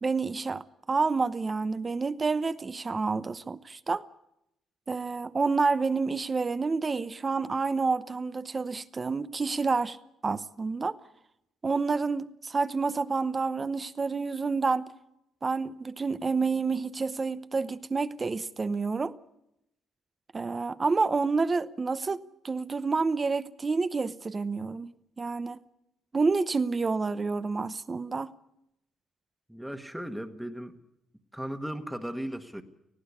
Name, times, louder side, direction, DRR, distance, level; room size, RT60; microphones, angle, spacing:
voice 1, 0.0-4.0 4.9-10.0 10.2-11.0 11.6-14.9 15.4-19.1 20.3-25.6 26.1-28.3, right 4 dB, 30° right, 0.8 m, -29 dB
voice 2, 29.5-30.8 31.3-32.6, equal, ahead, 1.5 m, -36 dB
19.0 x 15.5 x 9.6 m
cardioid pair, 90°, 0 cm